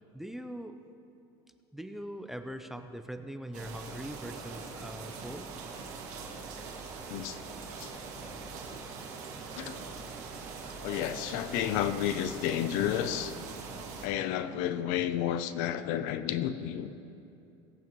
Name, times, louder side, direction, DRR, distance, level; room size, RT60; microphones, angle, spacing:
voice 1, 0.1-0.7 1.7-5.5, equal, ahead, 8 dB, 0.5 m, -41 dB
sound 1, 3.5-14.1, right 4 dB, 65° right, 2.0 m, -42 dB
voice 2, 7.1-7.9 9.6-9.8 10.8-13.3 14.0-16.9, left 10 dB, 75° left, 12 dB, 0.6 m, -31 dB
18.0 x 8.1 x 3.0 m, 2.8 s
supercardioid pair, 120°, 13 cm